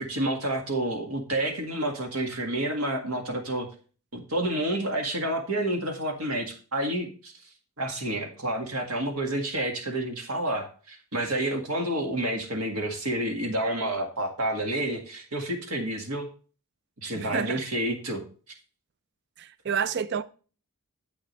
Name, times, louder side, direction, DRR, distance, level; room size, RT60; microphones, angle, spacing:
voice 1, 0.0-3.7 4.1-7.3 7.8-16.3 17.0-18.3, right 1 dB, 75° right, 1.9 m, -29 dB
voice 2, 17.2-17.6 19.4-20.2, right 7 dB, 50° right, 0.4 m, -29 dB
10.0 x 8.2 x 3.2 m
head